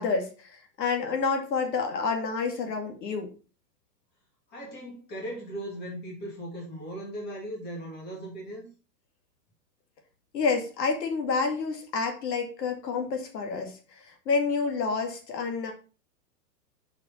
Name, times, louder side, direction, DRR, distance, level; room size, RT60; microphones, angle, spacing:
voice 1, 0.0-3.3 10.3-15.7, left 4 dB, 75° left, 2.4 m, -29 dB
voice 2, 4.5-8.7, right 1 dB, 20° left, 2.2 m, -38 dB
5.8 x 5.1 x 5.6 m
supercardioid pair, 175°, 49 cm